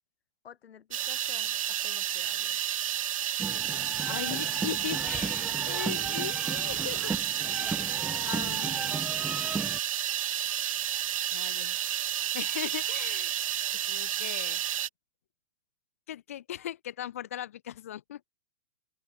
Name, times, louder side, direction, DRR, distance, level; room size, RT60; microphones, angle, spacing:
voice 1, 0.4-2.6 7.6-7.9, left 8 dB, 60° left, 7.4 m, -52 dB
sound 1, 0.9-14.9, right 11 dB, 30° right, 0.9 m, -31 dB
sound 2, 3.4-9.8, right 4 dB, 5° right, 1.0 m, -36 dB
voice 2, 4.1-7.1 7.6-7.8 8.2-9.1 11.3-11.8 12.3-13.4 13.7-14.6 16.1-18.3, left 11 dB, 15° left, 0.6 m, -39 dB
open air
hypercardioid pair, 180°, 35 cm